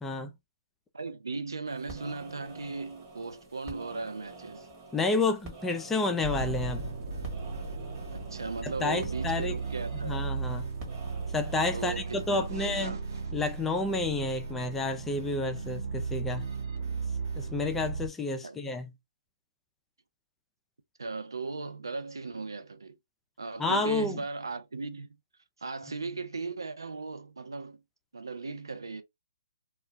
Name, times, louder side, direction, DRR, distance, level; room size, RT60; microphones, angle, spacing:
voice 1, 0.0-0.3 4.9-6.9 8.6-9.6 10.0-10.7 11.3-12.9 13.3-16.5 17.3-18.9 23.6-24.2, left 3 dB, 10° left, 0.4 m, -30 dB
voice 2, 0.9-4.7 8.1-10.2 11.7-13.0 18.4-18.6 21.0-23.0 23.4-25.1 25.6-27.8 28.1-29.0, right 3 dB, 85° right, 0.6 m, -37 dB
sound 1, 1.6-12.6, right 3 dB, 25° right, 1.1 m, -48 dB
sound 2, 6.2-18.1, right 4 dB, 55° right, 1.0 m, -36 dB
2.2 x 2.2 x 3.0 m
hypercardioid pair, 145°, 2 cm